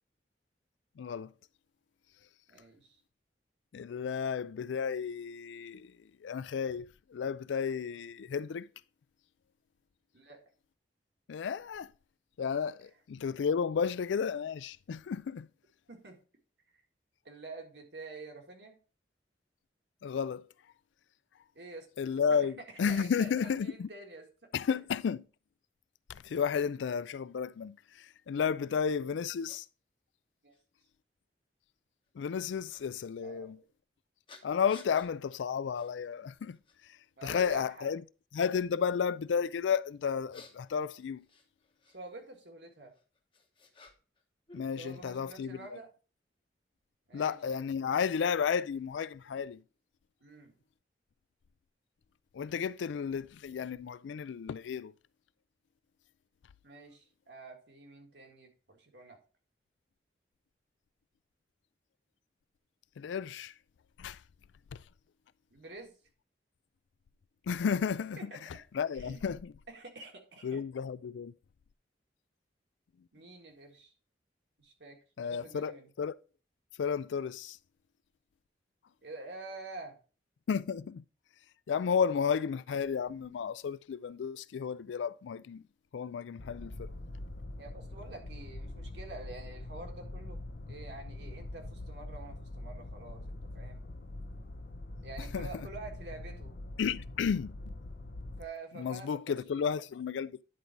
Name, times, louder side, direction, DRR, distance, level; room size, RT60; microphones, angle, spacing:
voice 1, 1.0-1.3 3.7-8.7 11.3-11.9 12.4-15.5 20.0-20.5 22.0-23.9 24.5-25.3 26.1-29.7 32.1-33.6 34.4-38.0 38.3-41.3 44.5-45.8 47.1-49.6 52.3-54.9 63.0-63.5 64.0-64.2 64.7-64.8 67.4-69.5 70.4-71.3 75.2-76.2 76.8-77.6 80.5-81.1 81.7-85.7 85.9-86.9 95.2-95.7 96.8-97.7 98.8-100.4, left 6 dB, 80° left, 0.4 m, -33 dB
voice 2, 2.5-3.0 10.1-10.4 15.9-16.2 17.2-18.8 21.6-21.9 22.3-22.5 22.9-24.2 30.4-30.6 33.2-33.5 37.2-37.9 41.9-42.9 44.8-45.9 47.1-47.4 50.2-50.5 56.6-59.2 65.5-65.9 68.2-68.3 69.0-69.2 69.7-70.6 73.1-73.9 74.6-75.9 79.0-80.0 87.6-90.4 90.7-93.8 95.0-96.5 98.4-99.4, right 3 dB, 70° right, 1.8 m, -47 dB
sound 1, 28.9-29.0 29.5-29.6 30.5-30.6 32.7-32.8 34.3-35.1 35.7-35.9 36.4-36.9 37.3-37.8 40.0-42.0 42.9-44.2 44.5-45.3, left 3 dB, 30° left, 1.0 m, -56 dB
sound 2, 86.4-98.4, left 1 dB, 55° left, 0.7 m, -43 dB
10.0 x 4.0 x 4.5 m
head